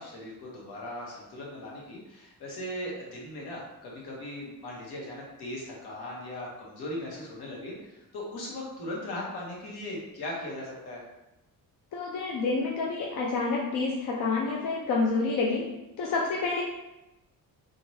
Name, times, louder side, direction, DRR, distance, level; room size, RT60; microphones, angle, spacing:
voice 1, 0.0-11.0, left 1 dB, 80° left, -3 dB, 1.1 m, -38 dB
voice 2, 11.9-15.6 16.0-16.6, left 3 dB, 55° left, -2 dB, 0.5 m, -28 dB
3.1 x 2.4 x 2.7 m, 0.95 s
cardioid pair, 175°, 38 cm